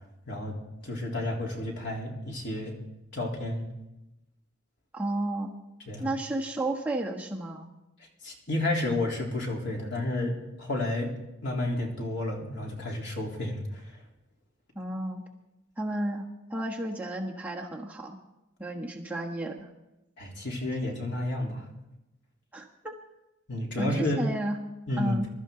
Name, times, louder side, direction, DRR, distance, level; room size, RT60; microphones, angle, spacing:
voice 1, 0.8-2.8 3.1-3.7 5.9-6.1 8.2-10.3 10.6-11.1 11.4-13.8 20.2-21.6 23.5-24.2 24.9-25.2, left 1 dB, 60° left, -1 dB, 3.6 m, -31 dB
voice 2, 4.9-5.5 6.0-7.7 14.7-15.2 15.8-18.2 18.6-19.7 22.5-22.9 23.8-24.6 25.0-25.3, right 1 dB, 10° right, -2 dB, 1.3 m, -32 dB
21.5 x 13.0 x 3.9 m, 0.95 s
head